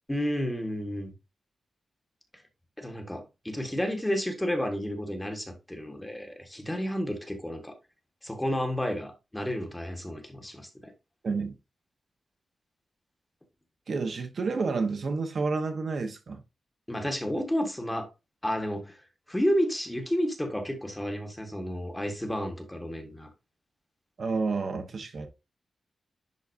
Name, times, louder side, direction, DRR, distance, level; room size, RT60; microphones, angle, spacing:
voice 1, 0.1-1.1 2.8-7.7 8.2-10.9 16.9-18.1 18.4-19.0 19.3-23.3, equal, 10° left, 1.3 m, -31 dB
voice 2, 13.9-16.4 24.2-25.3, right 4 dB, 45° right, 1.0 m, -30 dB
10.5 x 4.1 x 2.6 m
wide cardioid pair, 175°, 0 cm